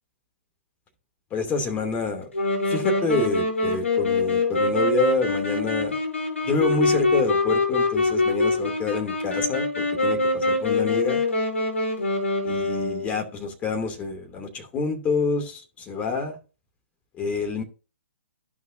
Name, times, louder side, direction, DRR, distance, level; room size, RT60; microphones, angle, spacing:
voice 1, 1.3-2.3 2.7-6.0 6.4-11.2 12.4-16.4 17.2-17.6, left 4 dB, 20° left, 2.7 m, -27 dB
Wind instrument woodwind instrument, 2.3-13.2, left 2 dB, 75° left, 5.1 m, -24 dB
15.0 x 5.7 x 2.7 m
figure-of-eight pair, 125°, 7 cm